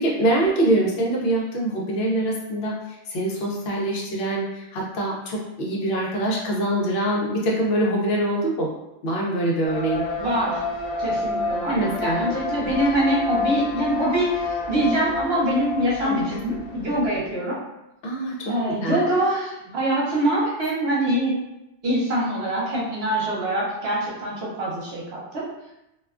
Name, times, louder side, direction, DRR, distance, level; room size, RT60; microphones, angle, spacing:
voice 1, 0.0-2.7 3.1-8.7 9.0-10.0 11.7-12.3 16.0-16.3 18.0-18.3 18.8-19.2, right 1 dB, 70° left, -2 dB, 0.8 m, -24 dB
sound 1, 9.7-17.2, left 3 dB, 35° left, 0.3 m, -29 dB
voice 2, 10.2-10.6 11.0-17.6 18.5-21.4 21.8-25.4, right 1 dB, 70° right, -5 dB, 1.0 m, -24 dB
2.4 x 2.2 x 2.3 m, 0.89 s
omnidirectional pair, 1.1 m